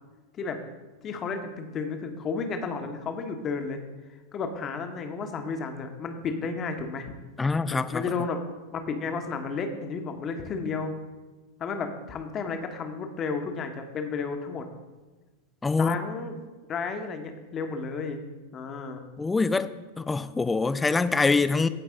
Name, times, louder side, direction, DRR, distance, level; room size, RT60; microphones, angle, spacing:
voice 1, 1.0-3.8 4.3-7.1 7.9-8.4 8.7-10.9 11.6-14.6 15.7-16.4 16.7-18.2 18.5-19.0, left 4 dB, 30° left, 1.1 m, -32 dB
voice 2, 7.4-8.0 15.6-16.0 19.2-21.7, left 4 dB, 10° left, 0.4 m, -24 dB
15.0 x 5.3 x 3.7 m
figure-of-eight pair, 90°, 0 cm